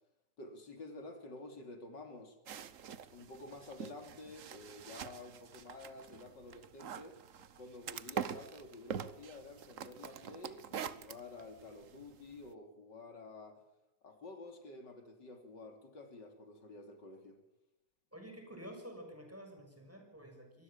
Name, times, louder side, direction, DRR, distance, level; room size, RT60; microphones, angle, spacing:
voice 1, 0.4-2.4 3.1-7.2 7.6-13.6 14.0-17.4, left 2 dB, 90° left, 6 dB, 4.0 m, -50 dB
sound 1, 2.5-12.5, right 8 dB, 55° right, 1.2 m, -45 dB
voice 2, 18.1-20.6, equal, 10° right, 3 dB, 6.2 m, -50 dB
24.0 x 20.0 x 7.4 m, 0.86 s
omnidirectional pair, 1.8 m